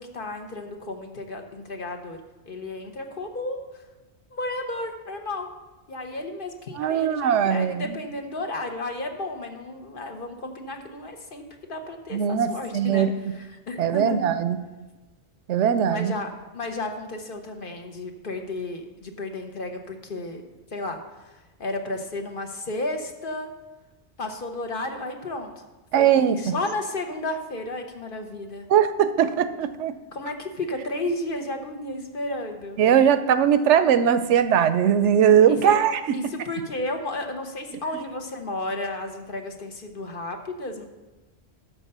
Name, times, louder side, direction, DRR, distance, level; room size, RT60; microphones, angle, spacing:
voice 1, 0.0-2.2 2.5-3.6 4.3-5.5 5.9-14.2 15.9-20.4 20.7-23.5 24.2-25.5 25.9-28.7 30.1-32.8 35.5-35.8 36.1-40.9, left 2 dB, 50° left, 4 dB, 1.1 m, -33 dB
voice 2, 6.8-7.8 12.1-13.1 13.8-14.6 15.5-16.1 25.9-26.5 28.7-29.9 32.8-35.9, right 8 dB, 85° right, 12 dB, 0.9 m, -20 dB
12.0 x 4.4 x 6.7 m, 1.1 s
omnidirectional pair, 1.2 m